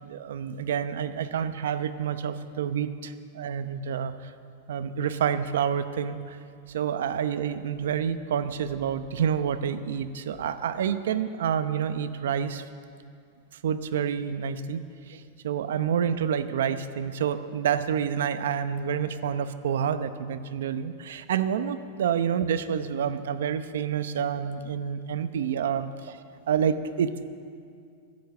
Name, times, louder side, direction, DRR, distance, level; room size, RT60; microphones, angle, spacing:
voice 1, 0.0-4.3 4.7-6.4 6.7-12.6 13.6-26.2 26.5-27.2, right 8 dB, 90° right, 11 dB, 0.8 m, -28 dB
16.0 x 12.0 x 7.1 m, 2.3 s
supercardioid pair, 155°, 0 cm